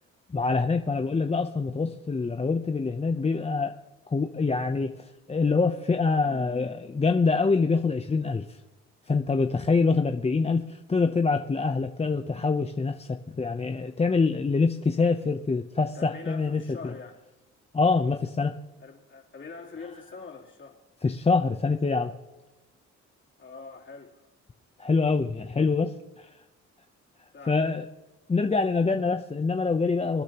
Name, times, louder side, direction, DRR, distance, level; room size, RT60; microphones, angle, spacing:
voice 1, 0.3-3.7 4.1-8.6 9.1-16.6 17.7-18.5 21.0-22.1 24.8-26.3 27.5-27.8 28.3-30.2, left 4 dB, 20° left, 6 dB, 0.7 m, -25 dB
voice 2, 15.9-17.2 18.8-20.8 23.4-24.3 27.3-27.7, left 4 dB, 40° left, -2 dB, 3.4 m, -44 dB
27.0 x 9.9 x 3.0 m, 1.0 s
cardioid pair, 90°, 30 cm